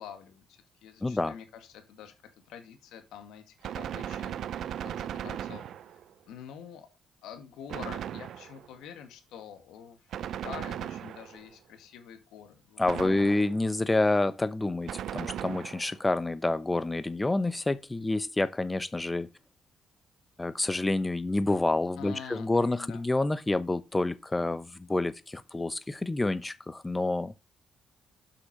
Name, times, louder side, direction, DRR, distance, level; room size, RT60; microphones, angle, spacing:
voice 1, 0.0-2.1 2.5-6.0 6.3-6.9 7.2-13.2 22.0-23.0, left 8 dB, 90° left, 2.0 m, -47 dB
voice 2, 1.0-1.3 12.8-19.3 20.4-27.3, left 2 dB, 15° left, 0.9 m, -28 dB
Gunshot gunfire, 3.6-6.1 7.7-8.7 10.1-11.5 12.9-13.7 14.9-16.0, right 10 dB, 70° right, 0.5 m, -37 dB
8.2 x 6.1 x 5.4 m
cardioid pair, 90°, 0 cm